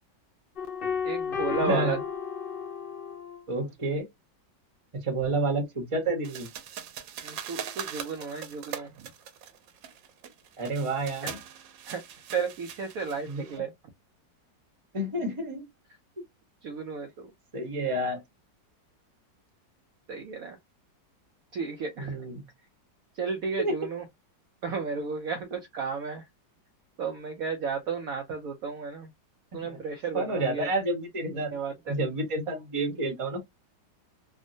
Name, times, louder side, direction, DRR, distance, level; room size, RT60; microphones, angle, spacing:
sound 1, 0.6-3.4, left 6 dB, 90° left, 0.4 m, -32 dB
voice 1, 1.0-2.0 7.2-9.1 11.9-12.0 12.3-13.7 16.6-17.3 20.1-20.6 21.5-22.2 23.1-24.0 24.6-26.2 27.0-29.1 29.5-30.7 31.3-31.9, right 5 dB, 70° right, 0.9 m, -33 dB
voice 2, 1.6-2.0 3.5-4.1 5.0-6.5 10.6-11.4 13.3-13.5 14.9-15.7 17.5-18.2 22.0-22.4 23.6-23.8 29.5-29.8 30.1-31.5 31.9-33.4, right 2 dB, 25° right, 0.7 m, -29 dB
sound 2, 6.2-13.6, right 9 dB, 85° right, 1.4 m, -41 dB
3.5 x 2.1 x 2.5 m
omnidirectional pair, 2.0 m